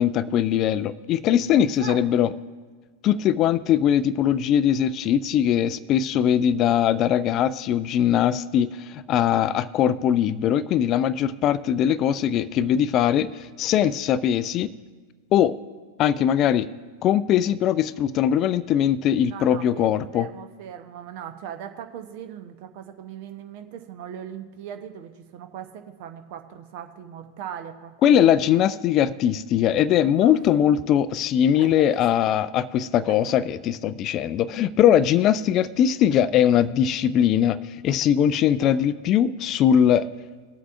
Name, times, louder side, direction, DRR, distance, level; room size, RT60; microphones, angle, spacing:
voice 1, 0.0-2.3 3.0-14.7 15.3-15.6 16.0-16.7 17.0-20.3 28.0-40.1, left 10 dB, 35° left, 17 dB, 0.3 m, -21 dB
voice 2, 1.7-2.0 19.3-28.7 30.2-30.7 31.6-31.8 33.1-33.4 38.6-38.8, right 9 dB, 50° right, 7 dB, 0.8 m, -39 dB
21.0 x 7.9 x 2.5 m, 1.5 s
figure-of-eight pair, 90°, 0 cm